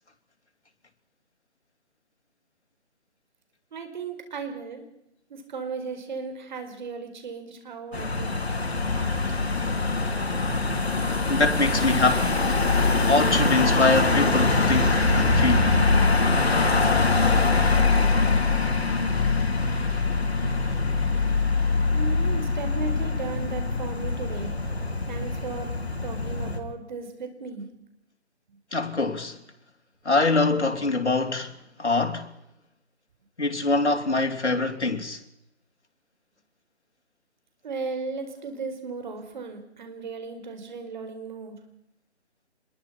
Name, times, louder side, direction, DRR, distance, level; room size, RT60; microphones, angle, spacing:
voice 1, 3.7-4.8 5.3-9.1 21.9-24.5 25.1-25.7 26.0-27.7 37.6-41.6, right 5 dB, 45° right, 5.2 m, -36 dB
Car passing by / Engine, 7.9-26.6, left 3 dB, 70° left, 4.3 m, -23 dB
voice 2, 11.3-12.4 13.1-15.7 20.5-20.6 28.7-29.4 30.0-32.3 33.4-35.2, left 3 dB, 85° left, 3.2 m, -24 dB
26.5 x 22.0 x 6.0 m
figure-of-eight pair, 155°, 33 cm